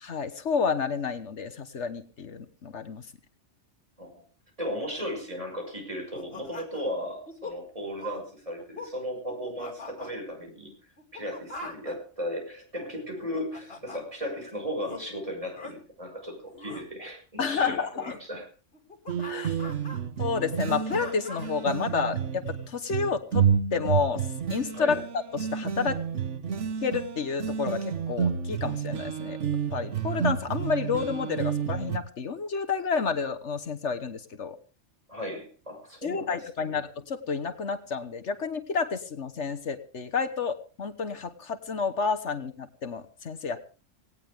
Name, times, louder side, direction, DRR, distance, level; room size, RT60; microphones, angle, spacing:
voice 1, 0.0-3.1 17.4-18.1 19.2-19.6 20.2-23.4 23.7-25.0 25.3-26.0 26.8-29.4 29.7-34.6 36.0-43.6, left 5 dB, 70° left, 8 dB, 1.5 m, -30 dB
voice 2, 4.6-10.7 11.1-18.5 24.7-25.0 35.1-36.8, equal, 30° right, 2 dB, 5.7 m, -36 dB
sound 1, 6.1-6.9 7.3-7.6 8.0-8.2 8.6-8.9 9.3-10.1 11.0-12.0 13.0-14.0 14.8-15.0 15.5-15.7 16.5-16.8 18.0-18.2 18.7-20.0 20.5-21.6, left 2 dB, 55° left, 3.1 m, -41 dB
sound 2, 19.1-32.0, right 7 dB, 75° right, 1.4 m, -30 dB
18.0 x 17.5 x 3.5 m, 0.36 s
omnidirectional pair, 1.2 m